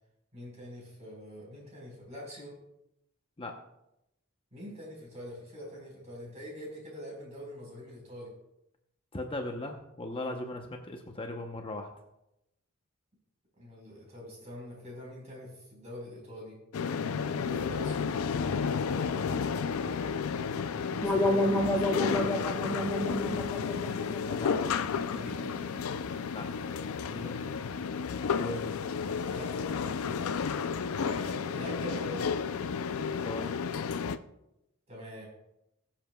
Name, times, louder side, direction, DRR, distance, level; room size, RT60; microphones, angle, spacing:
voice 1, 0.3-2.5 4.5-8.3 10.2-10.3 13.6-16.6 17.2-18.1 18.8-20.1 20.6-22.6 25.1-25.5 27.0-27.5 29.3-30.0 31.0-32.2 34.9-35.3, left 1 dB, 35° right, -2 dB, 4.3 m, -44 dB
voice 2, 9.1-11.9 24.3-24.6 26.3-26.5 28.4-28.8 33.1-33.5, left 2 dB, 25° left, 3 dB, 0.8 m, -38 dB
sound 1, 16.7-34.2, left 6 dB, 75° left, 0.4 m, -32 dB
sound 2, 21.0-25.9, left 1 dB, 10° left, 1.5 m, -31 dB
20.0 x 7.5 x 2.3 m, 0.87 s
head